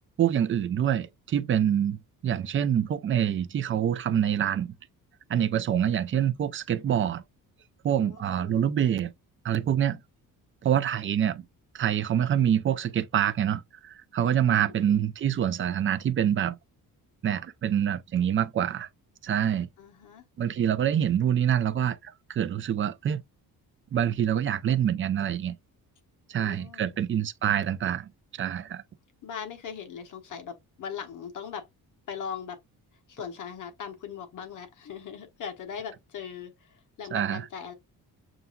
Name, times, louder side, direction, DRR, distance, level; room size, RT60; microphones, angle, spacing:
voice 1, 0.2-4.7 5.3-7.2 7.8-9.1 9.4-10.0 10.6-11.4 11.7-16.6 17.2-18.9 19.2-19.7 20.4-23.2 23.9-25.6 26.3-28.8 37.1-37.4, right 9 dB, 35° right, 0.4 m, -26 dB
voice 2, 7.9-8.7 14.7-15.0 19.8-20.3 26.4-27.0 29.2-31.7 32.1-32.6 33.1-37.7, left 7 dB, 55° left, 1.2 m, -40 dB
6.9 x 2.5 x 2.2 m
cardioid pair, 175°, 37 cm